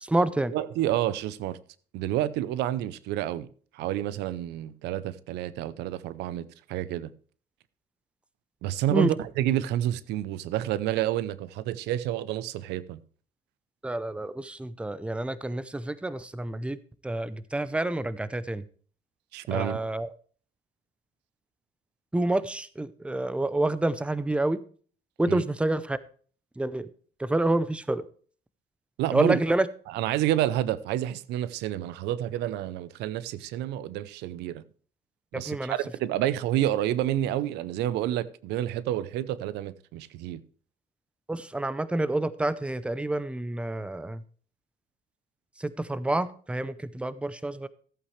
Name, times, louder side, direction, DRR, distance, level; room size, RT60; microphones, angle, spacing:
voice 1, 0.0-0.5 8.9-9.1 13.8-16.8 17.0-18.6 19.5-20.1 22.1-24.6 25.2-26.0 26.6-26.9 27.2-28.0 29.1-29.7 35.3-35.7 41.3-44.2 45.6-47.7, right 2 dB, 5° right, 0.7 m, -28 dB
voice 2, 0.5-1.6 1.9-3.5 3.7-7.1 8.6-13.0 19.3-19.8 25.3-25.4 29.0-29.4 29.9-34.6 35.3-40.4, right 12 dB, 85° right, 0.7 m, -29 dB
14.5 x 8.4 x 3.2 m
cardioid pair, 110°, 17 cm